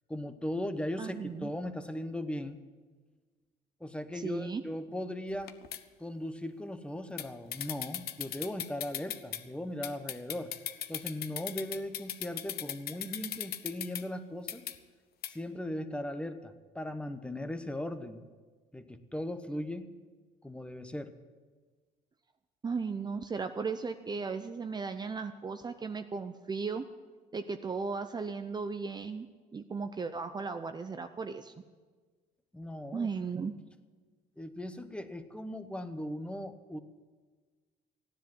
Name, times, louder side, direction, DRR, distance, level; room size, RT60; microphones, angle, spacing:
voice 1, 0.1-2.6 3.8-5.5 6.0-10.5 10.9-14.6 15.3-18.3 18.7-19.9 20.4-21.1 32.5-33.1 34.4-36.8, left 1 dB, 5° left, 9 dB, 1.0 m, -38 dB
voice 2, 1.0-1.5 4.1-4.6 22.6-26.8 27.3-29.3 29.5-31.5 32.9-33.5, right 5 dB, 25° right, 8 dB, 0.6 m, -36 dB
sound 1, 5.3-5.8 7.2-7.3 7.5-9.4 9.8-14.0 14.5-14.7 15.2-15.3, left 11 dB, 65° left, 0.9 m, -38 dB
15.0 x 10.0 x 7.7 m, 1.4 s
cardioid pair, 110°, 17 cm